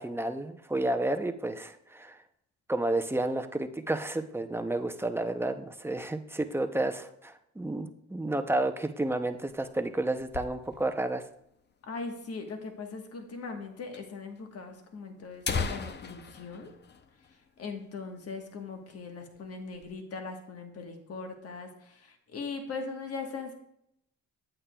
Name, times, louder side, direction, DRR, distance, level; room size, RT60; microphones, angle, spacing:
voice 1, 0.0-2.2 2.7-11.2, right 2 dB, 10° right, 7 dB, 0.6 m, -31 dB
sound 1, 9.3-11.1 11.4-11.5 11.7-11.8 12.5-12.6 13.5-13.6 13.9-14.0 14.8-14.9 15.2-17.8 18.1-18.3 18.7-18.9 19.4-19.9, left 5 dB, 35° left, 0.6 m, -37 dB
voice 2, 11.8-16.7 17.6-23.5, left 4 dB, 50° left, 4 dB, 1.3 m, -40 dB
8.6 x 8.6 x 2.3 m, 0.77 s
cardioid pair, 90°, 30 cm